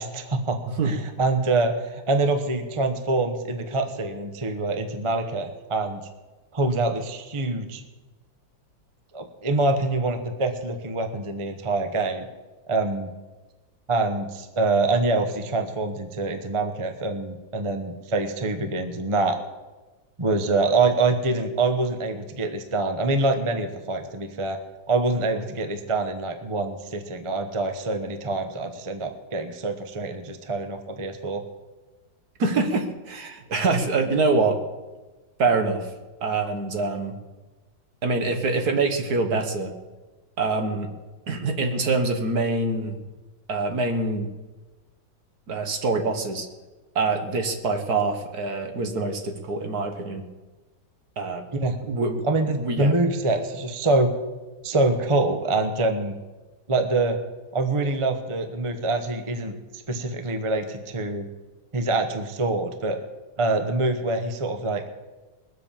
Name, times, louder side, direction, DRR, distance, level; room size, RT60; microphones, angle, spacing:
voice 1, 0.0-6.0 6.5-7.8 9.1-12.3 12.7-13.1 13.9-19.4 20.2-24.6 24.9-31.4 51.5-51.8 52.3-54.1 54.6-56.1 56.7-57.2 57.5-59.5 59.9-61.3 61.7-63.0 63.4-64.8, right 3 dB, 20° right, 7 dB, 0.9 m, -25 dB
voice 2, 32.4-34.6 35.4-35.9 36.2-37.1 38.0-39.7 40.4-40.9 41.3-43.0 43.5-44.3 45.5-46.5 47.0-50.3 51.2-51.5 51.8-52.2 52.6-52.9, right 3 dB, 55° right, 6 dB, 1.8 m, -25 dB
20.5 x 7.8 x 7.3 m, 1.2 s
omnidirectional pair, 2.0 m